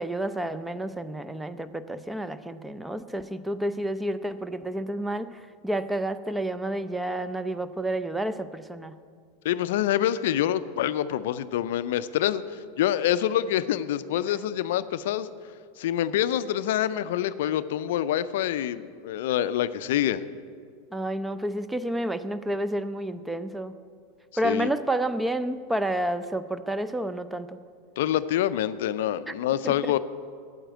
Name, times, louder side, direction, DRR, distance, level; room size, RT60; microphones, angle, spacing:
voice 1, 0.0-8.9 20.9-23.7 24.4-27.6 29.3-29.4 29.6-29.9, right 1 dB, 5° right, 12 dB, 0.5 m, -30 dB
voice 2, 9.4-15.3 15.8-20.2 24.4-24.7 28.0-30.0, left 11 dB, 70° left, 14 dB, 0.4 m, -26 dB
8.8 x 7.8 x 9.1 m, 2.1 s
hypercardioid pair, 95°, 0 cm